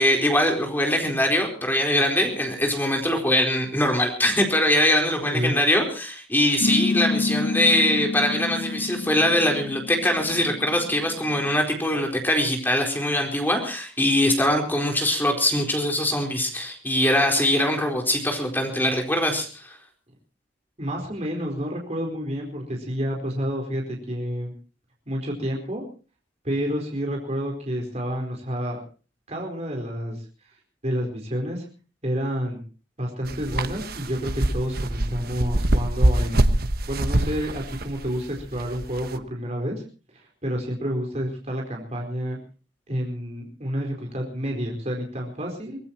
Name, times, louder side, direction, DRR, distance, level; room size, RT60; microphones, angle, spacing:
voice 1, 0.0-19.8, left 1 dB, 10° left, 3 dB, 4.2 m, -22 dB
voice 2, 5.2-5.5 20.8-24.5 25.1-25.8 26.4-28.8 29.3-30.6 30.8-31.6 32.0-32.6 33.0-36.5 36.9-39.8 40.1-42.4 42.9-45.8, equal, 35° right, 1 dB, 4.4 m, -29 dB
sound 1, 6.6-11.6, left 3 dB, 65° left, 1.2 m, -28 dB
sound 2, 33.2-39.2, right 1 dB, 55° right, 1.2 m, -24 dB
24.0 x 20.0 x 2.9 m, 0.37 s
head